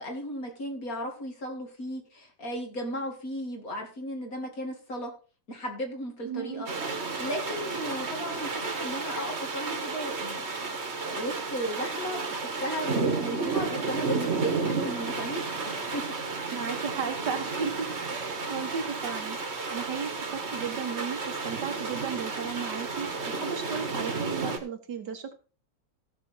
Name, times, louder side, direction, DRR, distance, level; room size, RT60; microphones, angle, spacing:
voice 1, 0.0-5.1 5.5-6.7 7.2-10.7 11.0-15.5 15.9-16.0 16.4-16.6, equal, 50° left, 2 dB, 2.9 m, -35 dB
voice 2, 6.3-6.6 16.5-25.3, right 6 dB, 65° right, 6 dB, 2.0 m, -35 dB
sound 1, 6.7-24.6, right 4 dB, 40° right, 1.9 m, -32 dB
15.5 x 6.6 x 4.5 m, 0.35 s
omnidirectional pair, 2.0 m